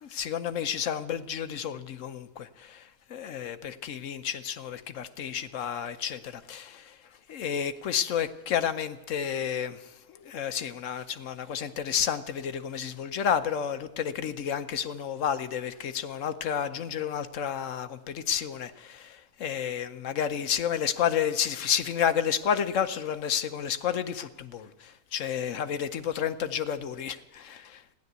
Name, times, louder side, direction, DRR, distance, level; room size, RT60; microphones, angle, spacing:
voice 1, 0.0-7.0 7.3-27.8, left 8 dB, 65° left, 11 dB, 1.0 m, -31 dB
15.0 x 10.5 x 8.0 m, 1.1 s
omnidirectional pair, 1.5 m